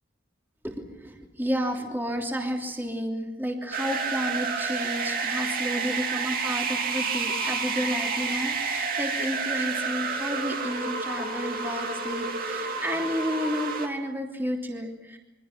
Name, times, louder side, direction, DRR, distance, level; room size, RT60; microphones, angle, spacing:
voice 1, 0.6-15.2, equal, 10° right, 0 dB, 3.1 m, -31 dB
sound 1, 3.7-13.9, right 4 dB, 45° right, 2.8 m, -30 dB
27.5 x 24.0 x 6.1 m, 0.95 s
head